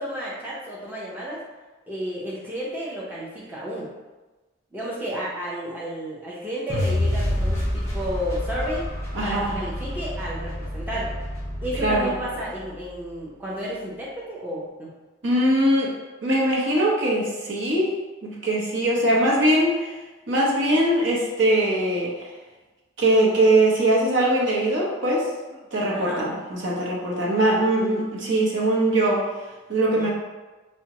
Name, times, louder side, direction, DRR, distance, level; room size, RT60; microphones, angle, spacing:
voice 1, 0.0-1.4 1.9-3.9 4.7-8.8 9.2-11.1 11.6-14.9 25.9-26.2 30.0-30.1, equal, 10° right, -7 dB, 0.6 m, -32 dB
sound 1, 6.7-12.9, left 1 dB, 10° left, 1.2 m, -28 dB
voice 2, 9.1-9.6 11.8-12.1 15.2-15.9 16.2-17.9 18.2-20.0 20.3-22.1 23.0-25.3 25.7-29.2 29.7-30.1, right 1 dB, 65° right, -3 dB, 0.8 m, -21 dB
4.9 x 2.1 x 2.8 m, 1.2 s
head